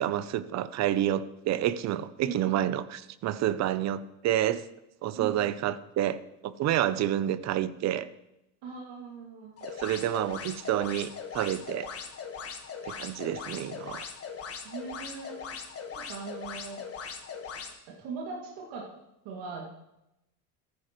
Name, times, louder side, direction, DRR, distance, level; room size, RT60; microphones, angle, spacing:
voice 1, 0.0-4.6 5.0-8.1 9.6-11.9 12.8-14.0, right 12 dB, 40° right, 15 dB, 0.6 m, -29 dB
voice 2, 2.2-2.7 5.2-5.5 8.6-9.6 14.6-15.4 15.9-16.8 18.0-18.9 19.2-19.7, right 5 dB, 65° right, -3 dB, 2.4 m, -40 dB
sound 1, 9.6-17.7, left 6 dB, 30° left, 1.5 m, -40 dB
14.0 x 10.5 x 3.1 m, 0.88 s
supercardioid pair, 115°, 44 cm